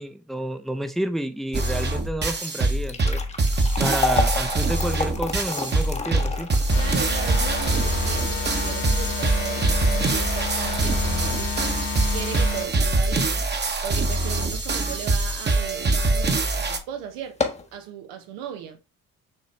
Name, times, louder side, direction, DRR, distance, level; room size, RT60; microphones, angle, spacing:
voice 1, 0.0-3.2 3.8-6.5, right 1 dB, ahead, 0.6 m, -30 dB
sound 1, 1.5-16.8, right 2 dB, 30° right, 1.0 m, -24 dB
sound 2, 2.7-14.9 15.3-15.4 16.2-16.3 16.7-16.8 17.2-17.8, left 3 dB, 20° left, 0.9 m, -32 dB
sound 3, 6.7-12.7, left 3 dB, 75° left, 1.4 m, -30 dB
voice 2, 6.8-11.8 12.1-13.5 13.8-18.8, right 8 dB, 85° right, 0.9 m, -37 dB
5.5 x 2.9 x 3.2 m
supercardioid pair, 65°, 37 cm